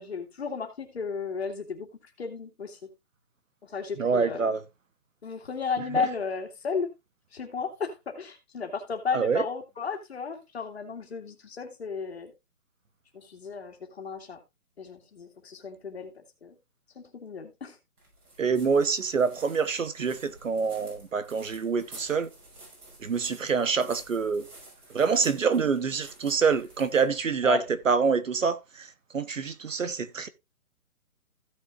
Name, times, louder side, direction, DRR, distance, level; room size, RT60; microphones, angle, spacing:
voice 1, 0.0-1.9 2.2-2.9 3.6-4.5 5.2-6.9 7.3-12.3 13.1-14.4 14.8-16.5 17.0-17.8 27.4-27.6, left 5 dB, 45° left, 2.4 m, -34 dB
voice 2, 4.0-4.6 5.9-6.0 9.1-9.4 18.4-22.3 23.0-24.5 24.9-28.9 29.1-30.3, right 5 dB, 55° right, 1.1 m, -26 dB
sound 1, 18.0-27.9, right 2 dB, 90° right, 6.4 m, -51 dB
16.0 x 6.5 x 2.5 m
hypercardioid pair, 170°, 45 cm